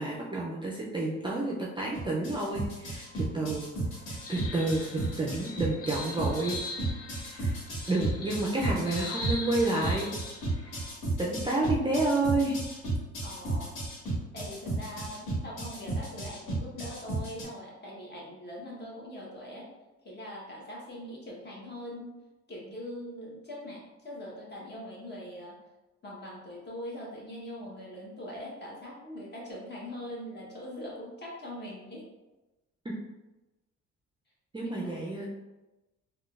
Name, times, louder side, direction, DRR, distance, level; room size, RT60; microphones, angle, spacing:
voice 1, 0.0-3.1 3.3-3.7 4.1-6.6 7.3-7.5 7.9-10.2 10.6-10.8 11.2-12.6 32.8-33.0 34.5-35.4, right 2 dB, 15° right, -4 dB, 0.4 m, -30 dB
sound 1, 1.9-17.4, right 3 dB, 80° left, 1.4 m, -33 dB
sound 2, 3.1-10.9, left 2 dB, 50° left, 0.6 m, -42 dB
voice 2, 13.2-13.8 14.3-19.7 20.0-22.2 22.5-25.6 26.0-32.0 34.6-34.9, left 1 dB, 35° left, -4 dB, 1.1 m, -42 dB
3.6 x 2.4 x 2.4 m, 1.1 s
cardioid pair, 90°, 30 cm